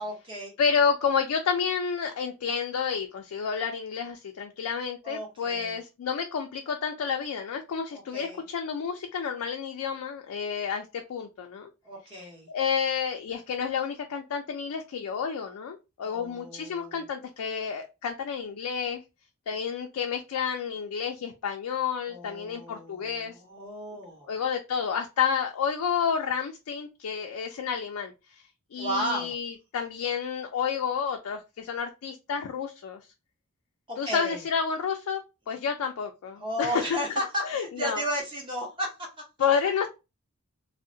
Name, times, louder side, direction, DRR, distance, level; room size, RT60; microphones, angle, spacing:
voice 1, 0.0-0.5 5.0-5.8 7.9-8.4 11.8-12.5 16.0-17.0 22.1-24.3 28.8-29.4 33.9-34.4 36.4-39.1, equal, 20° right, -1 dB, 0.8 m, -34 dB
voice 2, 0.6-11.7 12.2-19.0 19.5-23.4 24.3-28.1 28.7-33.0 34.0-37.0 37.4-38.0 39.4-39.9, left 6 dB, 80° left, 3 dB, 0.4 m, -30 dB
2.7 x 2.1 x 2.5 m, 0.26 s
head